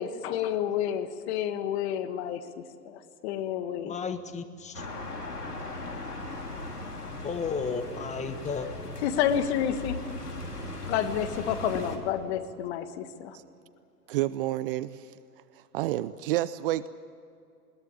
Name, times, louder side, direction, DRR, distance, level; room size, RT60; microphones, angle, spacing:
voice 1, 0.0-2.4 2.8-3.9 9.0-10.0 10.9-13.4, left 9 dB, 45° left, 10 dB, 1.7 m, -29 dB
voice 2, 3.9-4.8 7.2-8.9, left 5 dB, 15° left, 9 dB, 1.6 m, -33 dB
sound 1, 4.7-12.0, left 2 dB, 85° left, 3.2 m, -38 dB
voice 3, 14.1-15.1 15.5-16.9, right 15 dB, 40° right, 16 dB, 0.6 m, -30 dB
21.0 x 20.5 x 8.7 m, 2.5 s
figure-of-eight pair, 105°, 45 cm